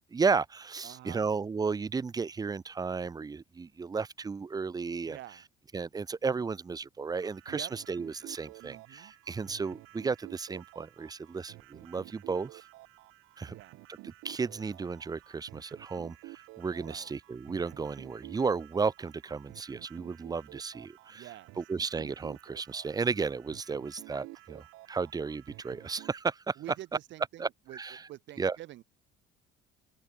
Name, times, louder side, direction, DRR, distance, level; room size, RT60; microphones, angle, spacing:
voice 1, 0.1-5.2 5.7-12.6 13.4-13.6 13.9-21.3 21.6-26.6 27.4-28.1 28.4-28.6, right 5 dB, 20° right, 1.2 m, -34 dB
voice 2, 0.8-1.3 5.0-5.5 7.5-7.7 8.6-9.1 13.5-13.8 16.8-17.1 21.1-21.5 26.6-27.8 28.1-28.8, right 15 dB, 60° right, 2.8 m, -47 dB
sound 1, 7.1-26.2, right 20 dB, 85° right, 5.8 m, -52 dB
open air
cardioid pair, 150°, 21 cm